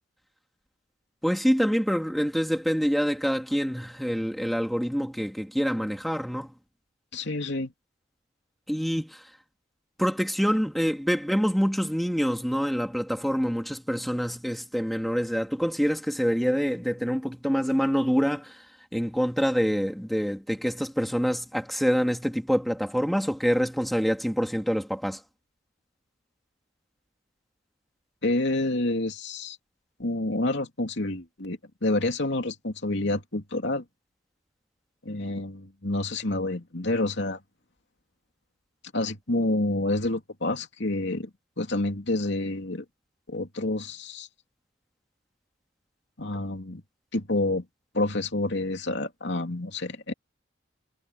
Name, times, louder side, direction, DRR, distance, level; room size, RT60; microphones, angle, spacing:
voice 1, 1.2-6.5 8.7-9.3 10.0-18.7 18.9-25.2, equal, ahead, 3.1 m, -26 dB
voice 2, 7.1-7.7 28.2-29.6 30.0-33.8 35.0-37.4 38.9-41.3 41.6-42.8 43.3-44.3 46.2-46.8 47.1-47.6 47.9-50.1, left 2 dB, 65° left, 3.0 m, -28 dB
head